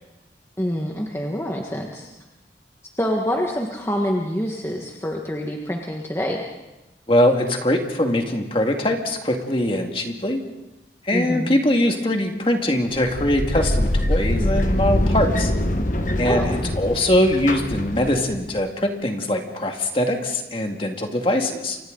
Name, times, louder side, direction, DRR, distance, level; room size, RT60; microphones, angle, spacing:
voice 1, 0.6-2.1 3.0-6.4 11.1-11.5 16.2-16.6, equal, 15° left, 0 dB, 1.5 m, -26 dB
voice 2, 7.1-10.4 11.0-15.5 16.2-21.8, left 1 dB, 30° left, 3 dB, 2.1 m, -22 dB
sound 1, 12.9-18.5, left 1 dB, 45° left, 1.3 m, -23 dB
29.0 x 25.0 x 3.9 m, 0.97 s
head